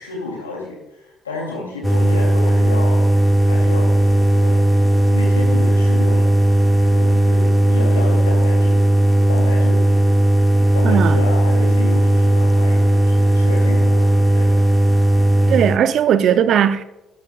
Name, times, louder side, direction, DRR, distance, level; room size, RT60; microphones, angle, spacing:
voice 1, 0.0-3.1 3.4-4.7 4.9-6.3 6.8-8.8 9.3-10.2 10.5-14.7 15.4-15.9 16.3-16.6, left 3 dB, 85° left, 2.6 m, -31 dB
sound 1, 1.8-15.8, right 1 dB, 5° left, 0.8 m, -15 dB
voice 2, 10.8-11.2 15.5-16.8, right 9 dB, 55° right, 0.5 m, -17 dB
12.0 x 12.0 x 2.3 m
figure-of-eight pair, 50°, 0 cm